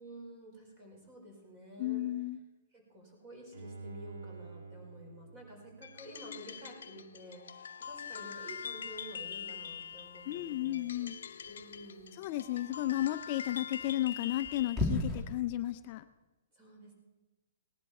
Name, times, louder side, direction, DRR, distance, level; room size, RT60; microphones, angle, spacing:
voice 1, 0.0-2.0 2.7-11.1 11.4-12.2 16.5-16.9, equal, 30° right, 1 dB, 4.7 m, -51 dB
voice 2, 1.8-2.4 10.3-11.1 12.2-16.0, left 14 dB, 35° left, 10 dB, 0.5 m, -33 dB
Bowed string instrument, 3.5-6.6 7.1-7.2, right 4 dB, 75° right, 1.8 m, -49 dB
sound 1, 5.8-14.8, left 7 dB, 80° left, 0.7 m, -44 dB
sound 2, 7.8-15.2, left 2 dB, 5° right, 2.5 m, -41 dB
18.0 x 11.0 x 4.3 m, 1.1 s
hypercardioid pair, 155°, 0 cm